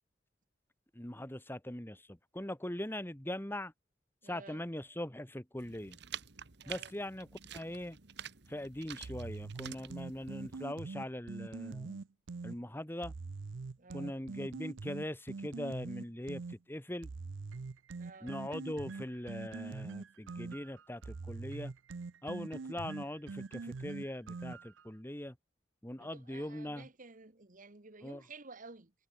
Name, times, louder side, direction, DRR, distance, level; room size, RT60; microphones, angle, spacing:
voice 1, 0.9-3.7 4.2-6.0 6.7-8.0 8.5-12.0 12.4-13.1 13.9-17.1 18.2-21.7 22.2-25.4 25.8-26.9 28.0-28.2, left 1 dB, 10° left, 1.7 m, -41 dB
voice 2, 4.2-4.6 6.6-6.9 13.8-14.2 18.0-18.4 26.0-28.9, right 3 dB, 45° right, 1.7 m, -53 dB
sound 1, 5.6-10.7, right 9 dB, 65° right, 1.6 m, -48 dB
sound 2, 9.0-12.6 13.0-16.6 17.0-24.8, right 4 dB, 90° right, 0.6 m, -43 dB
head